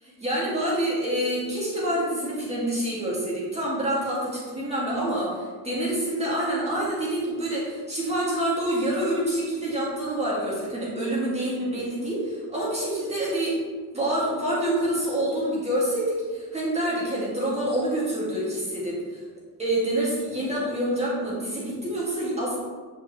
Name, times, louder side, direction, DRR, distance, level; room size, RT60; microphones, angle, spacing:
voice 1, 0.2-13.5 13.9-19.2 19.6-22.6, right 1 dB, 15° right, -7 dB, 2.3 m, -27 dB
10.0 x 5.5 x 3.2 m, 1.5 s
cardioid pair, 155°, 38 cm